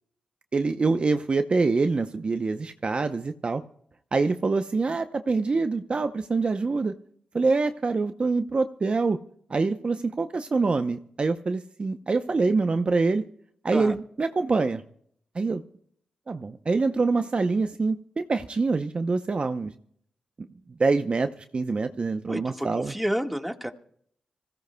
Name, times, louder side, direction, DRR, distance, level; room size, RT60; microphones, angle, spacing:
voice 1, 0.5-3.6 4.1-6.9 7.3-9.2 9.5-13.2 13.6-14.8 15.3-15.6 16.3-19.7 20.8-22.9, right 3 dB, 45° right, 8 dB, 0.7 m, -25 dB
voice 2, 22.3-23.7, equal, ahead, 4 dB, 1.7 m, -30 dB
26.0 x 16.0 x 2.3 m, 0.65 s
cardioid pair, 60°, 3 cm